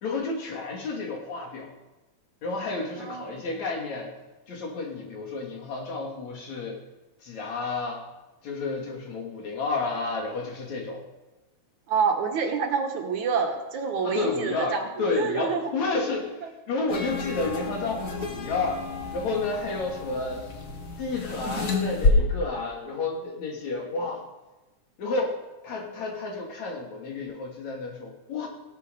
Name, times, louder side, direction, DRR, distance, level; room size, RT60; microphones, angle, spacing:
voice 1, 0.0-1.7 2.4-4.1 4.5-6.8 7.2-8.0 8.4-11.0 14.0-16.3 16.7-18.8 19.1-20.4 21.0-24.2 25.0-25.4 25.6-28.5, left 3 dB, 60° left, 0 dB, 3.8 m, -31 dB
voice 2, 3.0-3.6 11.9-15.7 16.4-16.5, right 6 dB, 65° right, 3 dB, 2.6 m, -28 dB
sound 1, 16.9-22.1, left 3 dB, 35° left, 1.8 m, -30 dB
16.5 x 12.0 x 5.4 m, 1.1 s
omnidirectional pair, 3.7 m